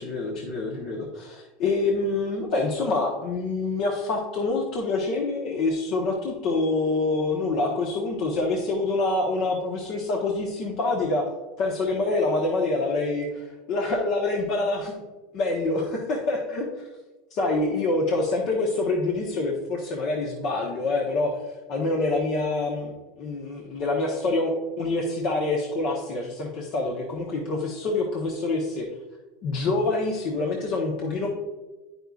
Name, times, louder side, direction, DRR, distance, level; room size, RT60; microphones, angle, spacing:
voice 1, 0.0-11.3 11.6-14.9 15.3-16.9 17.3-21.3 21.7-22.9 23.2-28.9 29.4-31.4, left 2 dB, 55° left, -1 dB, 1.0 m, -26 dB
9.0 x 5.4 x 2.4 m, 1.2 s
hypercardioid pair, 90°, 0 cm